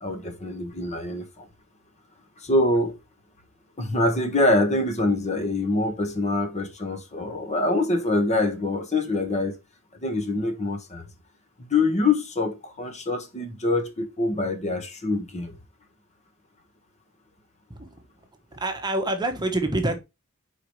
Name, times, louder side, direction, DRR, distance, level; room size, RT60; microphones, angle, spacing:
voice 1, 0.0-1.5 2.4-3.0 3.8-9.6 10.0-11.1 11.6-15.5, left 2 dB, 30° left, 1.2 m, -25 dB
voice 2, 17.7-18.1 18.5-20.0, right 2 dB, 20° right, 1.1 m, -27 dB
5.0 x 4.8 x 4.6 m
head